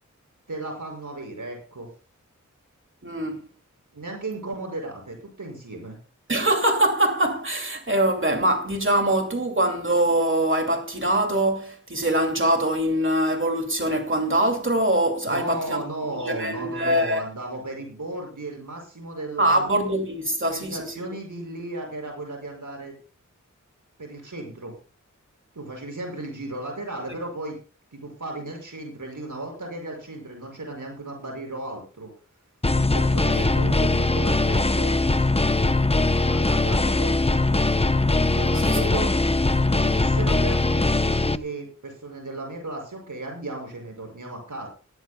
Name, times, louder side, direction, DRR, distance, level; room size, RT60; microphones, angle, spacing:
voice 1, 0.5-1.9 3.9-6.0 15.3-19.7 20.5-23.0 24.0-24.8 25.5-27.6 27.9-32.1 32.7-34.9 36.2-37.4 38.3-39.1 39.7-44.7, right 2 dB, 75° right, 6.5 m, -35 dB
voice 2, 3.0-3.4 6.3-15.8 16.1-17.2 19.4-20.9 33.3-33.4 38.7-38.9, right 1 dB, 40° right, 2.6 m, -23 dB
sound 1, 32.6-41.4, left 2 dB, 20° left, 0.8 m, -21 dB
18.0 x 16.0 x 2.3 m
wide cardioid pair, 55°, 31 cm